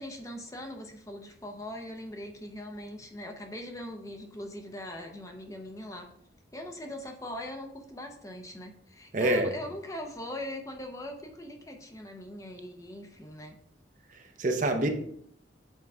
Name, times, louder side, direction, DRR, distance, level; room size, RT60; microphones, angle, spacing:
voice 1, 0.0-6.1 6.5-13.6, left 1 dB, 20° left, 3 dB, 0.7 m, -41 dB
voice 2, 9.1-9.5 14.1-14.9, right 1 dB, 45° right, 5 dB, 0.7 m, -27 dB
7.2 x 4.6 x 3.5 m, 0.67 s
head